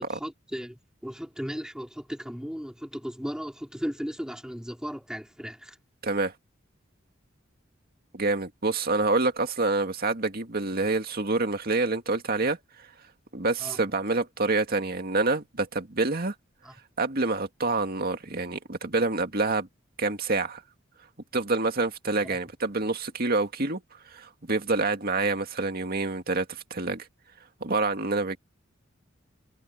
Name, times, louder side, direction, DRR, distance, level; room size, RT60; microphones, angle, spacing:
voice 1, 0.0-5.8 13.6-13.8 16.6-16.7 22.3-22.4, equal, 5° right, 3.8 m, -36 dB
voice 2, 6.0-6.3 8.1-12.6 13.3-16.3 17.0-19.7 20.0-20.6 21.3-23.8 24.1-27.1 27.6-28.4, right 3 dB, 50° right, 2.1 m, -27 dB
head